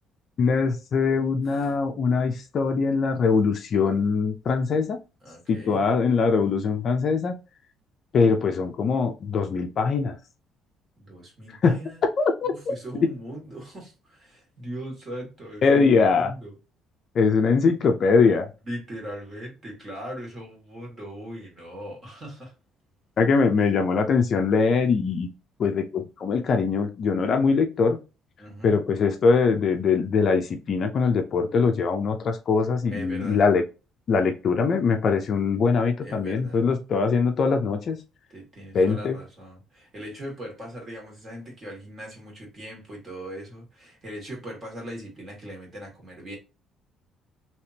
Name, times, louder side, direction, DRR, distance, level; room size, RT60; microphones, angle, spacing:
voice 1, 0.4-5.0 5.5-7.3 8.1-10.2 11.6-11.8 12.2-12.5 13.0-13.1 15.6-16.3 17.1-18.5 23.2-25.3 25.6-28.0 28.6-33.6 34.1-38.0 38.7-39.2, left 5 dB, 40° left, 0.5 m, -22 dB
voice 2, 5.2-5.8 11.0-12.0 12.4-16.6 18.7-22.5 23.6-23.7 28.4-28.8 32.9-33.4 36.0-36.6 38.3-46.4, right 1 dB, 25° right, 1.8 m, -39 dB
3.4 x 2.9 x 2.8 m
cardioid pair, 155°, 0 cm